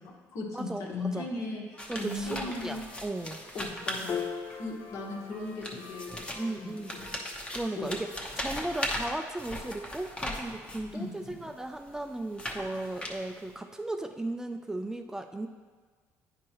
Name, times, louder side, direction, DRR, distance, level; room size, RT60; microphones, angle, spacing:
voice 1, 0.0-2.8 3.5-4.2 4.5-7.0 7.7-8.0 10.9-11.5, left 2 dB, 65° left, -1 dB, 1.4 m, -38 dB
voice 2, 0.5-0.9 1.1-1.3 1.9-3.4 6.3-6.9 7.5-8.1 8.4-15.5, right 2 dB, 10° right, 6 dB, 0.3 m, -36 dB
Trumpet, 1.7-10.0, left 1 dB, 85° left, 1.4 m, -54 dB
sound 1, 1.8-4.7 5.4-10.9 11.6-13.5, left 1 dB, 15° left, 0.9 m, -38 dB
Piano, 4.1-10.7, left 7 dB, 40° left, 0.5 m, -43 dB
9.6 x 4.6 x 3.0 m, 1.5 s
cardioid pair, 105°, 6 cm